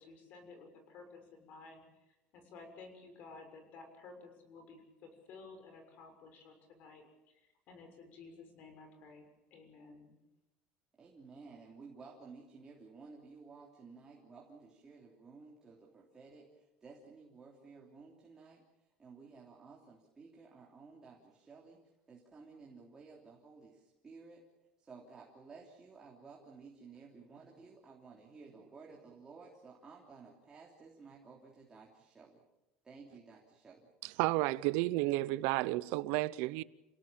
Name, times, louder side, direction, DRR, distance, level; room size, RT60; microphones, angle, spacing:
voice 1, 0.0-1.8 2.3-10.2, left 3 dB, 50° left, 6.5 m, -54 dB
voice 2, 11.0-18.6 19.0-21.8 22.1-24.4 24.8-32.4 32.8-33.9, right 4 dB, 20° right, 3.3 m, -55 dB
voice 3, 34.0-36.6, right 19 dB, 75° right, 0.7 m, -32 dB
28.5 x 17.5 x 7.5 m
cardioid pair, 155°, 3 cm